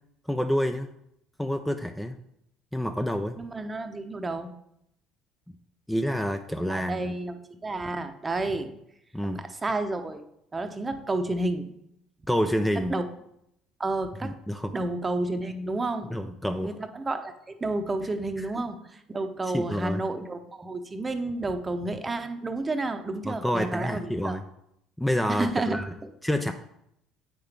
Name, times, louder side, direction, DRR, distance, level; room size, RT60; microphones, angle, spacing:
voice 1, 0.3-0.9 1.4-2.2 2.7-3.4 5.9-7.1 9.1-9.4 12.3-12.9 14.2-14.7 16.1-16.8 18.4-18.6 19.4-20.0 23.2-24.4 25.0-25.9 26.2-26.5, equal, 5° left, 7 dB, 0.5 m, -28 dB
voice 2, 3.4-4.5 6.7-8.7 9.3-10.2 10.5-11.7 12.9-13.0 13.8-14.3 14.7-16.2 16.6-24.4 25.3-26.1, right 2 dB, 25° right, 8 dB, 0.8 m, -31 dB
8.5 x 5.7 x 3.4 m, 0.78 s
hypercardioid pair, 60°, 0 cm